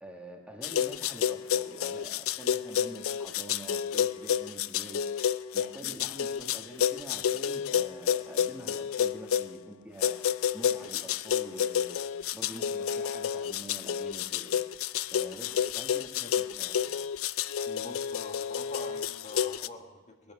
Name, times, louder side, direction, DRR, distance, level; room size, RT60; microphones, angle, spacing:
voice 1, 0.0-5.0 5.5-10.2 10.5-12.0 12.3-14.5 15.1-17.0, equal, 5° right, 1 dB, 1.4 m, -46 dB
sound 1, 0.6-9.5 10.0-19.7, left 8 dB, 70° left, 0.4 m, -30 dB
voice 2, 17.7-20.3, left 2 dB, 35° left, 3 dB, 1.6 m, -45 dB
20.0 x 11.0 x 4.8 m, 1.3 s
head